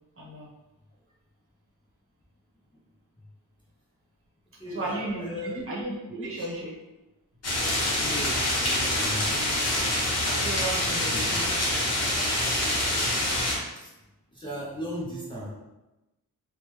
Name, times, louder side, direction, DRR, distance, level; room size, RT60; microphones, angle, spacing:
voice 1, 0.2-0.5 4.7-6.7 10.3-11.7, right 1 dB, 35° right, -6 dB, 0.9 m, -35 dB
voice 2, 4.6-5.7 6.2-6.5 8.0-9.4 11.0-11.4 13.8-13.9 14.3-15.5, equal, 15° left, -8 dB, 0.5 m, -37 dB
sound 1, 7.4-13.6, left 1 dB, 45° left, 0.9 m, -26 dB
3.2 x 2.1 x 3.0 m, 1.0 s
wide cardioid pair, 145°, 37 cm